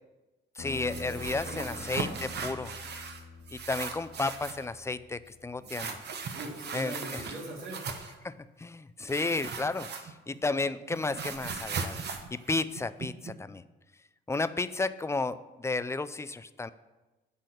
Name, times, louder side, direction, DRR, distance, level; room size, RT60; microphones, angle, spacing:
sound 1, 0.6-5.7, left 3 dB, 75° left, 2.5 m, -45 dB
voice 1, 0.6-2.7 3.5-6.0 6.7-7.2 8.2-8.3 8.6-12.0 12.3-13.6 14.3-16.7, left 3 dB, 15° left, 14 dB, 0.4 m, -33 dB
sound 2, 0.7-3.2 3.5-4.7 5.6-8.2 9.1-10.4 10.6-13.3, right 5 dB, 55° right, 1.1 m, -38 dB
voice 2, 1.1-1.8 2.2-2.6 5.6-5.9 6.3-7.8, right 1 dB, 85° right, -2 dB, 2.6 m, -42 dB
10.5 x 4.1 x 6.5 m, 1.1 s
cardioid pair, 90°, 20 cm